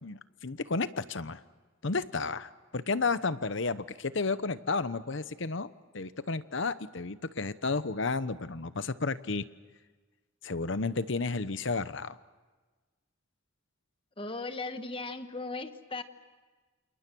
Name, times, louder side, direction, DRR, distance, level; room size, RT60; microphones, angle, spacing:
voice 1, 0.0-1.4 1.8-5.7 5.9-9.4 10.4-12.2, left 3 dB, 65° left, 14 dB, 0.9 m, -32 dB
voice 2, 14.2-16.0, left 3 dB, 25° left, 9 dB, 1.3 m, -37 dB
29.0 x 28.0 x 6.2 m, 1.3 s
head